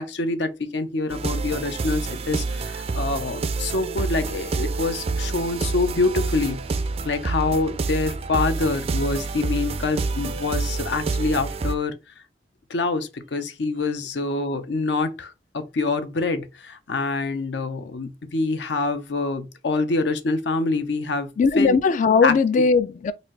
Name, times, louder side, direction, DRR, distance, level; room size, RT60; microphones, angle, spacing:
voice 1, 0.0-12.0 12.7-21.3 21.6-21.8 22.2-22.3, left 3 dB, 75° left, 0.7 m, -26 dB
sound 1, 1.1-11.8, right 3 dB, 35° right, 0.4 m, -28 dB
voice 2, 21.4-23.1, left 4 dB, 45° left, 0.3 m, -18 dB
4.1 x 2.6 x 3.2 m
head